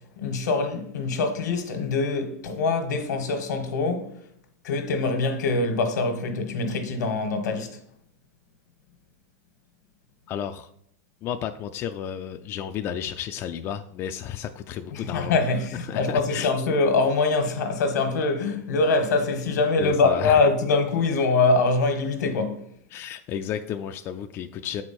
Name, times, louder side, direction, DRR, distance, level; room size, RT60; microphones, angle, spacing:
voice 1, 0.2-4.1 4.6-7.8 14.9-22.6, left 3 dB, 85° left, 1.4 m, -24 dB
voice 2, 10.3-10.7 11.2-15.4 15.8-16.7 19.8-20.5 22.9-24.8, left 9 dB, 25° left, 0.3 m, -32 dB
7.1 x 4.7 x 4.3 m
supercardioid pair, 145°, 9 cm